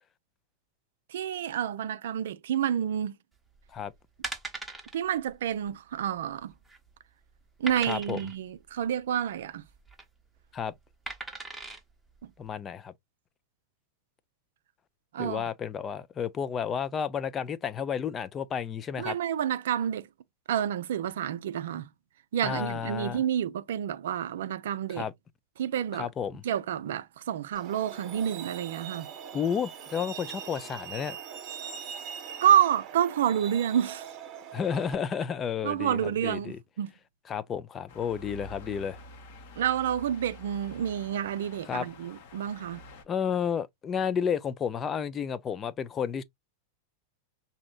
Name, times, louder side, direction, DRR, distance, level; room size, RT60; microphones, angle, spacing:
voice 1, 1.1-3.2 4.9-6.5 7.6-9.6 12.2-12.3 15.1-15.5 19.0-20.1 20.5-21.9 22.3-25.1 25.6-26.1 26.4-29.1 32.4-34.1 35.6-36.9 39.6-42.8, right 10 dB, 60° right, 0.4 m, -29 dB
sound 1, 3.6-3.8 4.2-5.0 5.3-5.5 5.7-5.8 6.4-6.9 7.7-8.3 9.7-10.0 11.1-11.8 12.4-12.5, right 2 dB, 5° right, 0.9 m, -39 dB
voice 2, 7.9-8.2 10.5-10.7 12.4-12.9 15.2-19.2 22.4-23.2 24.9-25.1 25.9-26.4 29.3-31.2 34.5-36.6 37.3-39.0 41.7-41.9 43.1-46.2, left 7 dB, 25° left, 0.4 m, -31 dB
Truck, 27.5-34.9, right 8 dB, 35° right, 1.1 m, -42 dB
sound 2, 37.9-43.0, left 1 dB, 50° left, 0.9 m, -48 dB
5.9 x 2.7 x 2.3 m
figure-of-eight pair, 90°, 0 cm